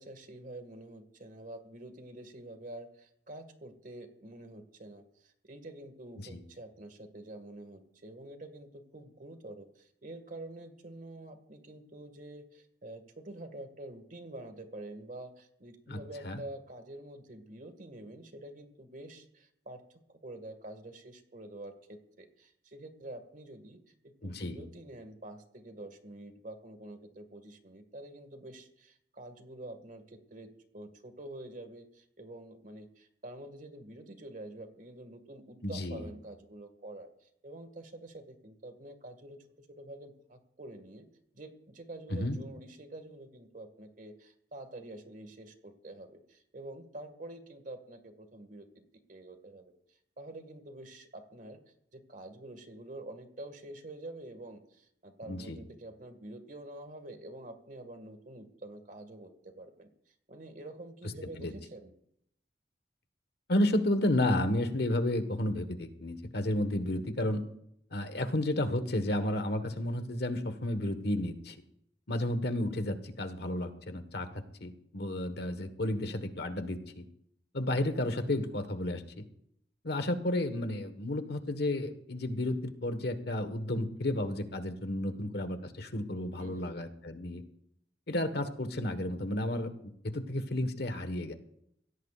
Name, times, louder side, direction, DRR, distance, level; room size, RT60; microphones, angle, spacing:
voice 1, 0.0-41.1 41.3-48.8 49.1-51.6 51.9-61.9 86.4-86.7, right 1 dB, 50° right, 7 dB, 1.8 m, -47 dB
voice 2, 24.2-24.6 35.6-36.0 42.1-42.4 55.3-55.6 61.4-61.5 63.5-67.4 67.9-71.6 72.1-74.3 74.6-77.0 77.5-79.2 79.8-87.4 88.1-91.3, left 1 dB, 65° left, 9 dB, 1.4 m, -32 dB
22.0 x 17.0 x 2.5 m, 0.73 s
head